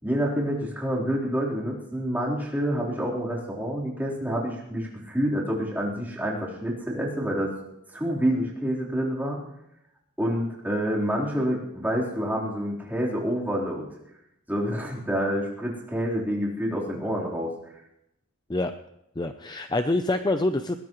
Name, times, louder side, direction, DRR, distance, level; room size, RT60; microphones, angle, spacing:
voice 1, 0.0-7.5 7.9-9.4 10.2-13.9 14.5-17.5, equal, 10° right, -5 dB, 3.9 m, -28 dB
voice 2, 19.2-20.8, left 2 dB, 20° left, 7 dB, 0.6 m, -26 dB
21.0 x 18.0 x 3.2 m, 0.84 s
head